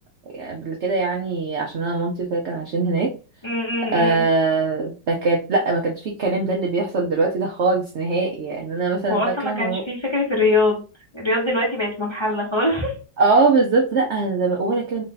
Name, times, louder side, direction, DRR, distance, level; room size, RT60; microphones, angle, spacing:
voice 1, 0.3-3.2 3.9-9.8 13.2-15.0, right 3 dB, 70° right, 0 dB, 0.6 m, -22 dB
voice 2, 3.4-4.2 9.1-10.8 11.1-12.9, left 2 dB, 20° left, -3 dB, 0.8 m, -22 dB
3.2 x 2.7 x 3.8 m, 0.34 s
omnidirectional pair, 1.9 m